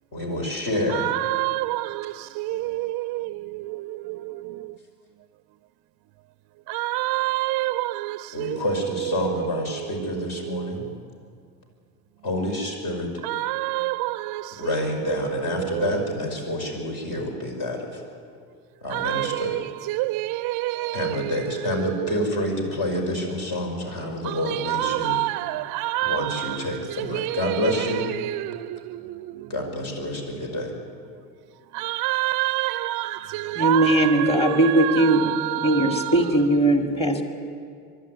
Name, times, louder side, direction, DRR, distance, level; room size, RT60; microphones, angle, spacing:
voice 1, 0.1-1.1 8.3-10.8 12.2-13.1 14.6-18.0 18.8-19.6 20.9-25.2 26.0-28.1 29.5-30.7, left 1 dB, 50° left, 5.7 m, -28 dB
voice 2, 0.9-4.6 6.7-8.6 10.6-10.9 13.2-14.6 18.9-19.6 19.9-21.4 24.2-26.6 27.0-27.8 28.2-29.5 31.7-36.1, right 18 dB, 50° right, 0.5 m, -28 dB
voice 3, 33.6-37.2, right 1 dB, 15° left, 2.2 m, -20 dB
22.5 x 12.5 x 9.8 m
supercardioid pair, 100°, 42 cm